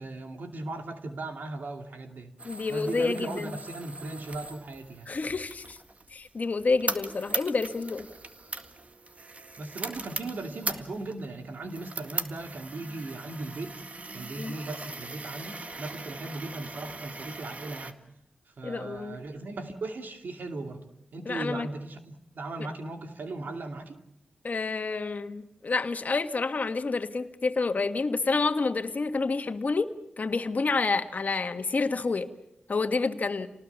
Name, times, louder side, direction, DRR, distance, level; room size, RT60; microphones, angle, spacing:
voice 1, 0.0-2.3 2.7-5.1 9.6-13.8 14.1-18.0 18.6-20.9 21.1-24.0, right 2 dB, 80° right, 2.5 m, -38 dB
voice 2, 2.4-3.6 5.1-5.8 6.1-8.1 14.4-14.5 18.6-19.2 21.2-21.7 24.4-32.3 32.7-33.5, left 4 dB, 60° left, 1.7 m, -29 dB
sound 1, 2.4-17.9, right 3 dB, 50° right, 1.9 m, -39 dB
28.5 x 19.0 x 7.0 m
cardioid pair, 55°, 3 cm